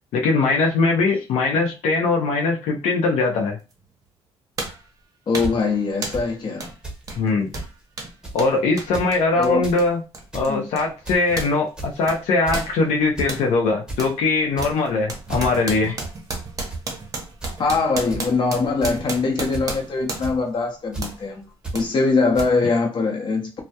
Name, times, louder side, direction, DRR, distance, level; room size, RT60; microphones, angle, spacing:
voice 1, 0.1-3.6 7.2-7.5 8.3-10.0 10.3-16.0, left 3 dB, 80° left, 0.5 m, -21 dB
sound 1, 3.7-3.8 4.6-4.9 5.3-5.6 6.0-6.3 6.6-6.8 7.0-11.6 11.8-13.5 14.0-14.2 14.6-20.5 21.0-21.2 21.7-21.9 22.4-22.5, right 3 dB, 35° right, 0.7 m, -33 dB
voice 2, 5.3-6.7 9.3-9.6 10.5-10.6 17.6-21.4 21.7-23.5, left 4 dB, 45° left, 0.7 m, -22 dB
sound 2, 5.4-5.5 6.1-6.2 6.8-7.0 7.3-7.4 7.5-7.7 8.2-8.4 8.8-9.1 9.5-9.8 10.2-10.5 11.1-11.4 11.8-12.0 12.5-12.7 13.2-13.3 13.6-14.0 14.5-14.9 15.3-15.5 16.0-16.1 16.4-16.8 17.4-17.5 18.1-18.2 18.8-19.1 19.5-19.8 20.2-20.4 20.9-21.1 21.6-21.8 22.4-22.5, right 2 dB, 10° right, 0.9 m, -31 dB
2.2 x 2.0 x 2.7 m
cardioid pair, 110°, 11 cm